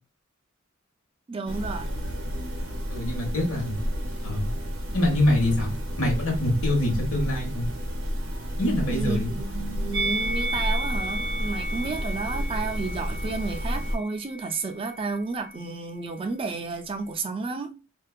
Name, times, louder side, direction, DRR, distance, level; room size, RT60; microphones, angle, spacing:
voice 1, 1.3-1.9 8.9-17.8, right 4 dB, 25° right, 0.4 m, -32 dB
sound 1, 1.5-14.0, equal, 80° right, 0.7 m, -31 dB
voice 2, 2.9-3.8 4.2-4.5 4.9-5.7 6.0-7.7 8.6-9.3, left 1 dB, 85° left, 1.2 m, -24 dB
Musical instrument, 9.9-15.2 15.4-15.6, right 1 dB, 30° left, 0.9 m, -33 dB
2.6 x 2.3 x 2.4 m
head